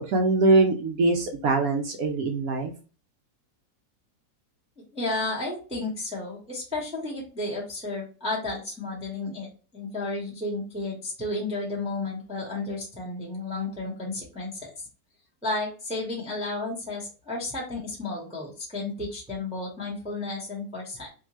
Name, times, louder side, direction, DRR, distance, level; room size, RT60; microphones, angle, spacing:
voice 1, 0.0-2.7, right 3 dB, 70° right, 4 dB, 0.9 m, -23 dB
voice 2, 4.9-9.5 9.7-14.7 15.4-21.1, left 2 dB, 5° right, -3 dB, 0.7 m, -32 dB
3.7 x 2.6 x 2.9 m, 0.36 s
omnidirectional pair, 2.0 m